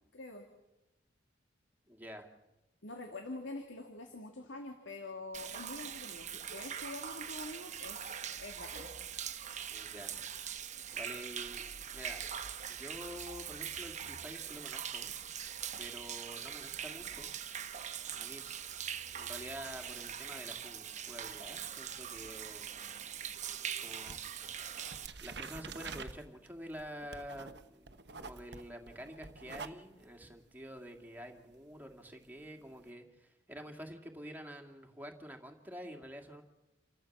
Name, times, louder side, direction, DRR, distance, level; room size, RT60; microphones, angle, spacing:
voice 1, 0.1-0.5 2.8-8.1 8.4-8.9, left 2 dB, 80° left, 3 dB, 2.4 m, -45 dB
voice 2, 1.9-2.3 9.7-10.4 10.9-11.6 11.9-12.3 12.7-15.1 15.8-17.3 18.1-18.5 19.1-22.7 23.8-24.6 25.2-36.4, equal, 10° right, 4 dB, 2.3 m, -48 dB
Human voice / Rain / Stream, 5.3-25.1, right 8 dB, 40° right, 1.0 m, -42 dB
sound 1, 21.2-23.7 24.0-32.9, right 4 dB, 60° right, 1.1 m, -49 dB
29.0 x 14.0 x 7.3 m, 1.0 s
head